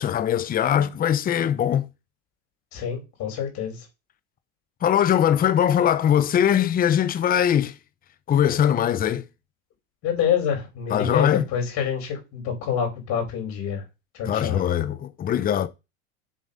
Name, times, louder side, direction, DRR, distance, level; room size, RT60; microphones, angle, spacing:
voice 1, 0.0-1.9 4.8-7.8 8.3-9.3 10.9-11.4 14.3-15.7, left 9 dB, 25° left, 0.8 m, -21 dB
voice 2, 2.7-3.9 10.0-13.8 14.1-14.6, left 8 dB, 50° left, 4.9 m, -27 dB
7.5 x 5.8 x 5.7 m
supercardioid pair, 120°, 34 cm